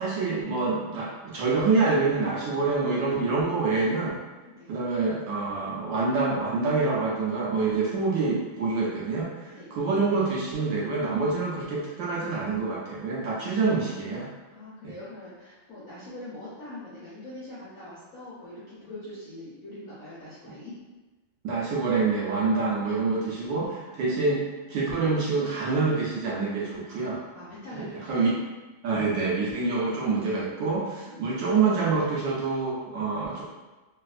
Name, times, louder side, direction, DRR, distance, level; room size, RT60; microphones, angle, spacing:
voice 1, 0.0-4.2 4.7-14.3 14.8-15.0 21.4-24.4 24.7-27.2 27.7-28.4 28.8-33.4, right 4 dB, 70° right, -5 dB, 1.2 m, -26 dB
voice 2, 4.5-4.8 9.5-9.7 14.5-20.7 27.3-28.3 31.1-31.3, left 1 dB, 70° left, -9 dB, 0.8 m, -43 dB
3.2 x 2.7 x 2.3 m, 1.2 s
omnidirectional pair, 2.3 m